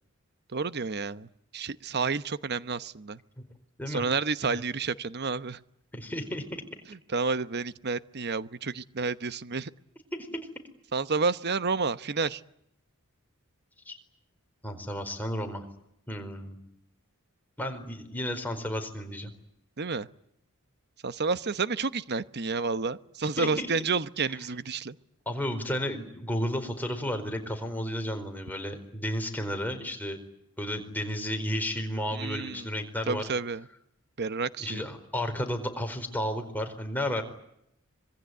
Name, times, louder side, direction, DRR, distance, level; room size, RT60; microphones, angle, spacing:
voice 1, 0.5-1.3 1.5-3.2 3.9-5.6 7.1-9.7 10.9-12.4 19.8-20.1 21.0-25.0 32.1-32.7 33.1-33.7 34.2-34.8, right 4 dB, 50° right, 14 dB, 1.0 m, -30 dB
voice 2, 5.9-6.6 10.2-10.3 13.9-14.0 14.6-15.7 16.1-16.6 17.6-19.3 23.4-23.7 25.3-30.2 30.6-33.2 34.6-37.2, equal, 10° left, 4 dB, 4.5 m, -32 dB
26.0 x 22.5 x 9.6 m, 0.77 s
head